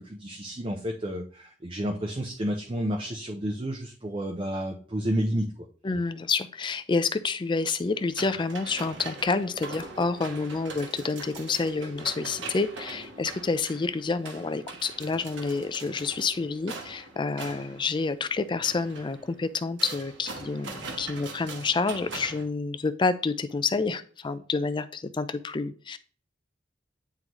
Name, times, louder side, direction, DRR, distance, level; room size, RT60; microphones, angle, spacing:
voice 1, 0.0-5.5, equal, 30° right, 2 dB, 0.6 m, -30 dB
voice 2, 5.8-26.0, left 4 dB, 25° left, 12 dB, 0.4 m, -28 dB
sound 1, 7.9-22.4, right 3 dB, 80° right, 1.2 m, -42 dB
9.2 x 3.8 x 3.0 m, 0.43 s
head